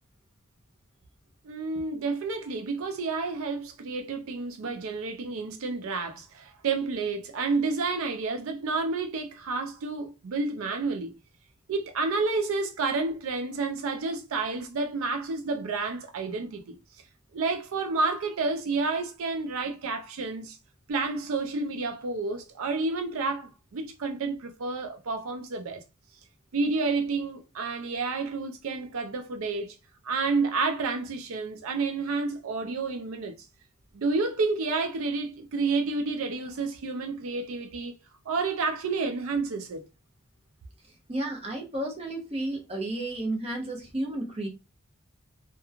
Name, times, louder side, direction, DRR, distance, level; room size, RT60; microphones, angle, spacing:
voice 1, 1.4-11.2 11.7-16.8 17.3-20.6 20.9-25.8 26.5-29.8 30.0-33.3 33.9-37.9 38.3-39.9, right 3 dB, 80° right, 0.4 m, -30 dB
voice 2, 40.8-44.5, right 1 dB, 30° right, 0.8 m, -32 dB
2.9 x 2.2 x 2.3 m
head